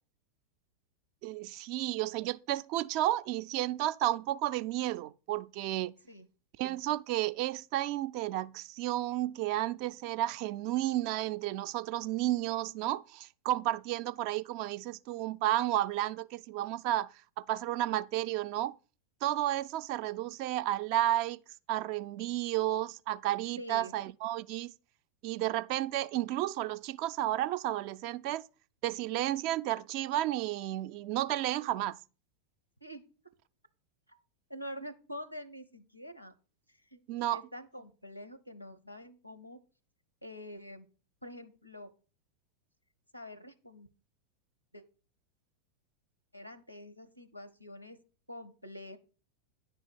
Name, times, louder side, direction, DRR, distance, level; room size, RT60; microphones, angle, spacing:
voice 1, 1.2-5.9 6.6-18.7 19.2-21.4 21.7-24.7 25.2-28.5 28.8-32.0 37.1-37.4, right 14 dB, 45° right, 0.3 m, -32 dB
voice 2, 23.6-24.0 32.8-33.0 34.5-36.3 36.7-39.6 40.2-40.9 41.2-41.9 43.1-43.9 44.7-44.8 46.3-48.0 48.3-49.0, equal, 90° left, 0.7 m, -46 dB
9.9 x 3.4 x 6.8 m
figure-of-eight pair, 90°, 0 cm